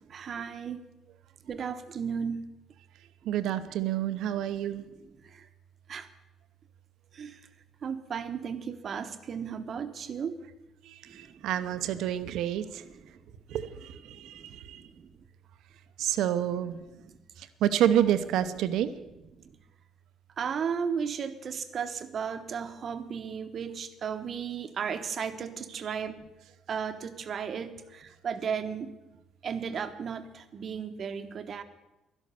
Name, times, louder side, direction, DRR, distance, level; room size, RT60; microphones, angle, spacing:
voice 1, 0.1-0.8 1.5-2.5 5.3-5.5 5.9-6.1 7.1-7.4 7.8-10.4 11.1-11.4 14.1-15.0 17.0-17.1 20.4-26.3 26.7-28.9 29.4-31.6, right 6 dB, 40° right, 9 dB, 1.1 m, -35 dB
voice 2, 3.2-4.9 10.8-12.8 13.5-14.8 16.0-16.8 17.4-18.9 25.7-25.9, right 11 dB, 75° right, 12 dB, 0.9 m, -29 dB
12.0 x 11.5 x 6.9 m, 0.99 s
cardioid pair, 140°, 0 cm